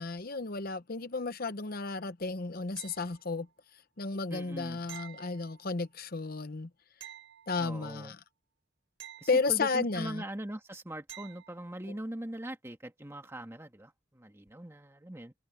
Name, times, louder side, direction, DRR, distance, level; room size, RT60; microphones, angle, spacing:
voice 1, 0.0-3.5 4.0-6.7 7.5-8.2 9.3-10.2, left 4 dB, 50° left, 0.9 m, -33 dB
sound 1, 2.8-3.5 4.9-6.0 7.0-8.0 9.0-10.0 11.1-11.7 14.5-14.6, right 11 dB, 65° right, 5.3 m, -50 dB
voice 2, 4.3-4.8 7.6-8.1 9.2-15.3, right 1 dB, 15° right, 1.5 m, -41 dB
head